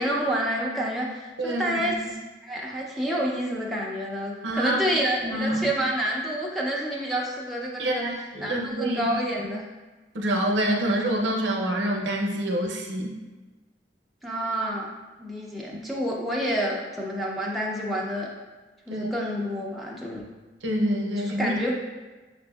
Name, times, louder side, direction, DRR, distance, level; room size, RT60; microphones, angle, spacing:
voice 1, 0.0-2.0 2.4-8.1 8.4-9.6 14.2-14.9 15.2-18.3 18.9-20.2 21.4-21.8, equal, ahead, -4 dB, 0.4 m, -28 dB
voice 2, 1.4-2.0 4.4-4.8 5.2-5.7 7.8-9.1 10.1-13.1 18.9-19.1 20.6-21.6, right 1 dB, 70° right, 1 dB, 0.6 m, -26 dB
5.9 x 2.5 x 2.2 m, 1.2 s
head